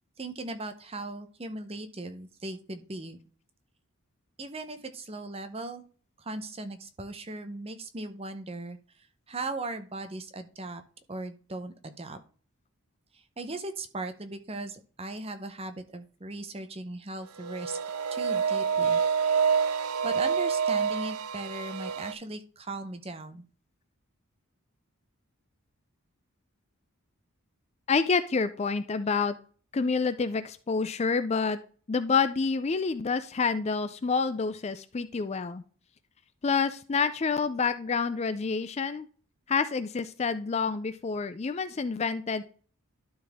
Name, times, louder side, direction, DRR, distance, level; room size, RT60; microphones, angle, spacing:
voice 1, 0.2-3.2 4.4-5.8 6.2-10.8 11.1-12.2 13.1-17.8 18.1-19.0 20.0-23.4, right 2 dB, 25° right, 8 dB, 0.8 m, -38 dB
sound 1, 17.4-22.1, right 6 dB, 80° right, 0.5 m, -27 dB
voice 2, 27.9-29.4 29.7-31.6 31.9-35.6 36.4-39.1 39.5-42.4, left 5 dB, 30° left, 12 dB, 0.4 m, -28 dB
12.0 x 4.1 x 3.5 m, 0.41 s
head